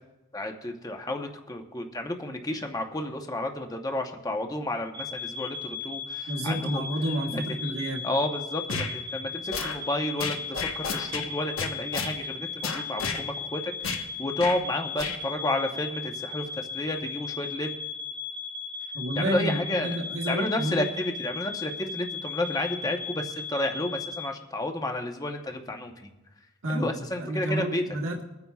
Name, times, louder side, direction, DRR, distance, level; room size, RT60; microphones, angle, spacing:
voice 1, 0.3-6.9 7.3-7.6 8.0-10.4 10.7-17.8 19.1-26.1 26.7-27.8, left 1 dB, 15° left, 4 dB, 0.9 m, -31 dB
sound 1, 4.9-24.3, left 5 dB, 20° right, 0.6 m, -37 dB
voice 2, 6.3-8.1 18.9-20.9 26.6-28.2, right 1 dB, 70° right, -1 dB, 1.3 m, -30 dB
sound 2, 8.7-8.9 9.5-9.8 10.2-11.3 11.6-12.1 12.6-13.2 13.8-14.0 14.4-14.6 15.0-15.2, left 4 dB, 65° left, 1.1 m, -31 dB
23.0 x 9.7 x 2.4 m, 1.0 s
head